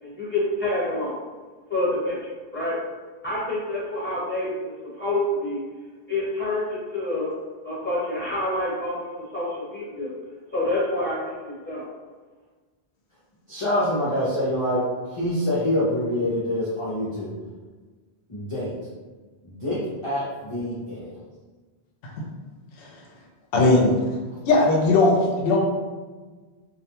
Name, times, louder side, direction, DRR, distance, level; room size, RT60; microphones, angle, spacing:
voice 1, 0.0-1.2 1.7-2.2 2.5-2.8 3.2-5.6 6.1-7.3 7.6-9.0 9.3-10.1 10.5-11.8, left 1 dB, 10° left, -10 dB, 1.0 m, -27 dB
voice 2, 13.5-14.8 15.1-17.3 18.3-18.7 19.4-19.8 20.0-21.1, left 1 dB, 40° left, -9 dB, 0.5 m, -25 dB
voice 3, 23.5-23.9 24.5-25.6, left 2 dB, 70° left, 0 dB, 0.7 m, -18 dB
2.3 x 2.1 x 2.9 m, 1.3 s
omnidirectional pair, 1.1 m